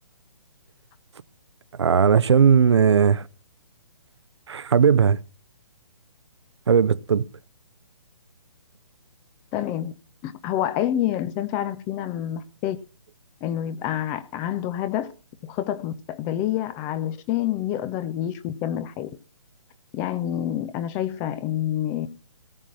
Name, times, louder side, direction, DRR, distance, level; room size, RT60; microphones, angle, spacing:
voice 1, 1.8-3.3 4.5-5.2 6.7-7.2, right 7 dB, 55° right, 0.7 m, -17 dB
voice 2, 9.5-9.9 10.2-12.8 13.4-15.1 15.4-19.1 19.9-22.1, left 11 dB, 15° left, 0.6 m, -27 dB
17.5 x 6.1 x 8.6 m
figure-of-eight pair, 135°, 17 cm